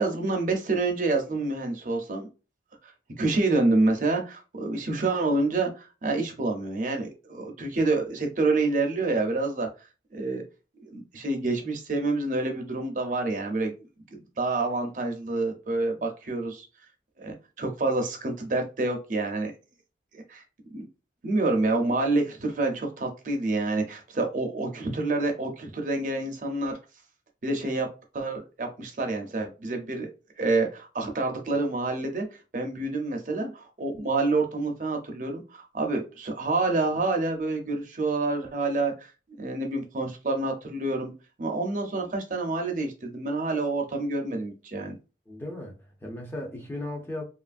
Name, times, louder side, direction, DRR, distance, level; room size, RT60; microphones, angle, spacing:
voice 1, 0.0-2.3 3.2-9.7 10.1-10.4 10.8-13.7 14.1-16.7 17.2-19.5 20.1-20.4 20.7-20.8 21.2-26.8 27.4-27.9 28.1-30.1 30.4-32.3 32.5-39.1 39.4-41.1 41.4-45.0, right 2 dB, 45° right, 0.5 m, -27 dB
voice 2, 45.3-47.2, left 1 dB, 10° left, 0.5 m, -36 dB
2.9 x 2.4 x 2.4 m
head